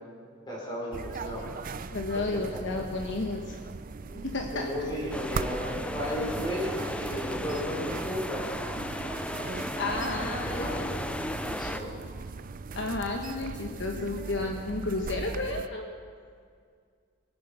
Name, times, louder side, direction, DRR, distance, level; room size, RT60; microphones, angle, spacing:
voice 1, 0.5-1.4 2.5-2.6 4.1-4.2 4.5-8.7 10.4-12.0, equal, 20° left, -4 dB, 4.7 m, -35 dB
sound 1, 0.9-15.7, right 4 dB, 45° right, 0.5 m, -39 dB
voice 2, 1.9-3.6 4.3-4.7 9.8-10.9 12.7-15.9, left 2 dB, 60° left, 2 dB, 1.1 m, -32 dB
sound 2, 5.1-11.8, left 1 dB, 5° left, 0.5 m, -35 dB
22.0 x 9.4 x 5.7 m, 2.1 s
head